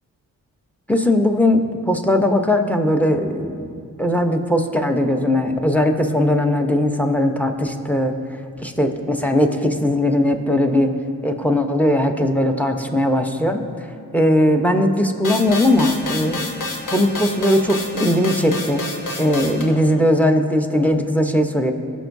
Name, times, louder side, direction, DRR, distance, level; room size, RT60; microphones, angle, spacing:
voice 1, 0.9-8.2 8.6-10.9 11.2-13.9 14.1-16.5 16.9-18.8 19.2-21.7, left 1 dB, 5° left, 5 dB, 0.9 m, -19 dB
sound 1, 15.2-19.6, left 2 dB, 65° left, 1.3 m, -28 dB
16.5 x 6.1 x 2.7 m, 2.4 s
cardioid pair, 55°, 34 cm